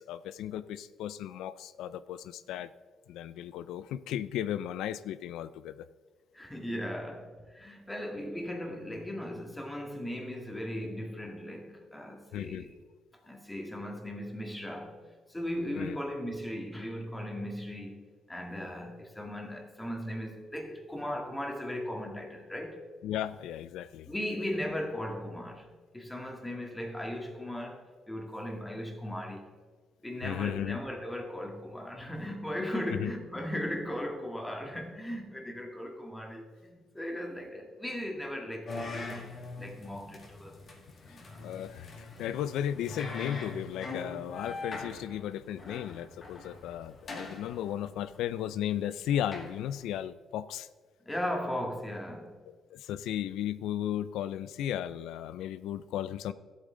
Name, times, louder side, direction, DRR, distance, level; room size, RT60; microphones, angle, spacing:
voice 1, 0.0-2.7 3.1-5.9 12.3-12.7 15.8-16.0 23.0-24.1 30.2-30.8 32.9-33.1 41.1-50.7 52.7-56.3, left 11 dB, 90° left, 14 dB, 0.4 m, -35 dB
voice 2, 6.3-12.7 13.2-15.0 15.3-22.8 24.1-25.7 25.9-29.5 30.0-39.3 39.6-40.7 41.0-41.4 51.0-52.4, left 1 dB, 10° left, 2 dB, 1.9 m, -37 dB
sound 1, 38.7-50.0, left 3 dB, 45° left, 2.0 m, -43 dB
13.5 x 8.2 x 3.8 m, 1.4 s
cardioid pair, 90°, 0 cm